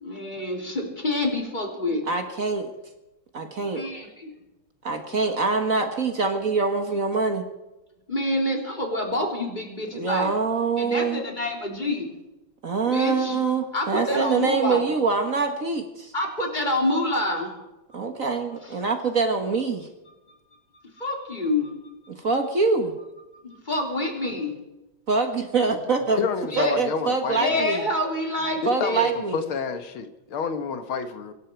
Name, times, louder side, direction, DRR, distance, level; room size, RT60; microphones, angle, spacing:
voice 1, 0.0-2.0 3.7-4.3 8.1-10.3 10.8-12.1 12.8-13.4 13.7-14.8 16.1-17.5 21.0-21.7 23.4-24.5 26.5-26.8 27.3-29.1, left 1 dB, 20° left, 3.5 m, -27 dB
voice 2, 2.1-2.6 3.3-3.8 4.8-7.4 9.9-11.2 12.6-16.1 17.9-19.9 22.1-22.9 25.1-26.2 26.6-27.9 28.6-29.5, right 4 dB, 45° right, 1.6 m, -24 dB
voice 3, 26.2-27.7 28.6-31.3, left 5 dB, 85° left, 2.1 m, -29 dB
25.0 x 12.0 x 4.6 m
omnidirectional pair, 2.2 m